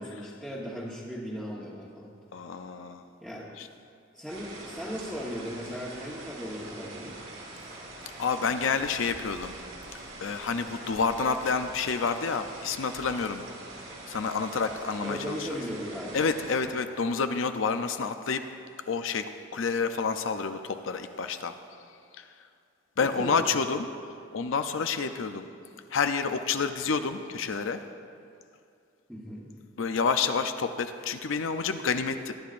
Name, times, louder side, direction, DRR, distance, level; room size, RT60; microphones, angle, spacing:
voice 1, 0.0-2.1 3.2-3.5 4.1-7.2 15.0-16.2 23.0-23.4 29.1-29.5, equal, 5° right, -8 dB, 1.2 m, -37 dB
voice 2, 2.3-3.0 3.6-3.7 8.2-9.5 10.2-13.4 14.1-15.5 16.1-18.4 18.9-19.2 19.5-21.5 22.2-22.3 23.0-23.9 24.3-25.5 25.9-27.8 29.8-32.3, left 5 dB, 70° left, 8 dB, 0.5 m, -29 dB
sound 1, 4.3-16.6, right 2 dB, 75° right, 3.0 m, -44 dB
22.5 x 10.5 x 2.5 m, 2.4 s
head